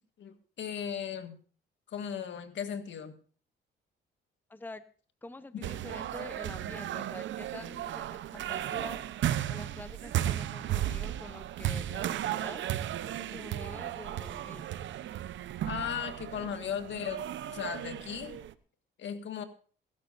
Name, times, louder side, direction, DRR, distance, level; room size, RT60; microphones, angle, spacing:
voice 1, 0.2-1.4 1.9-3.2 5.5-5.7 15.7-18.4 19.0-19.4, left 8 dB, 70° left, 7 dB, 1.8 m, -37 dB
voice 2, 4.5-4.8 5.2-9.0 9.5-12.7 13.2-14.7, left 2 dB, 10° left, 12 dB, 0.8 m, -46 dB
sound 1, 5.6-18.5, right 12 dB, 70° right, 0.8 m, -35 dB
21.5 x 12.5 x 2.6 m, 0.42 s
cardioid pair, 90°, 20 cm